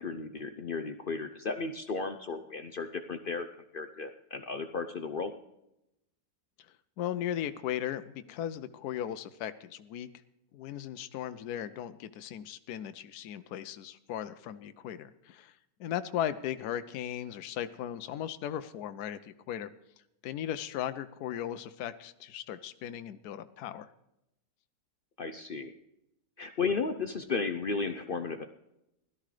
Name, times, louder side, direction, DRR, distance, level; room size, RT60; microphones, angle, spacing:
voice 1, 0.0-3.5 3.7-5.3 25.2-25.7 26.4-28.5, left 4 dB, 60° left, 8 dB, 0.6 m, -34 dB
voice 2, 7.0-10.1 10.5-15.5 15.8-19.7 20.2-23.9, left 10 dB, 80° left, 10 dB, 1.1 m, -37 dB
16.5 x 12.5 x 3.2 m, 0.86 s
omnidirectional pair, 1.6 m